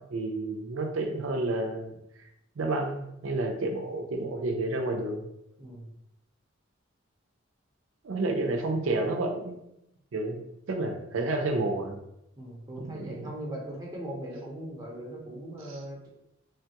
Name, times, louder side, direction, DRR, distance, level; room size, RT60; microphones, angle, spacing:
voice 1, 0.0-1.9 2.6-5.3 8.0-9.6 10.1-10.4 10.7-12.0 12.8-13.3 15.7-15.8, right 2 dB, 75° right, 3 dB, 0.5 m, -30 dB
voice 2, 5.6-5.9 10.9-11.0 12.4-16.1, right 1 dB, 20° right, -4 dB, 0.7 m, -39 dB
3.1 x 2.2 x 2.8 m, 0.84 s
head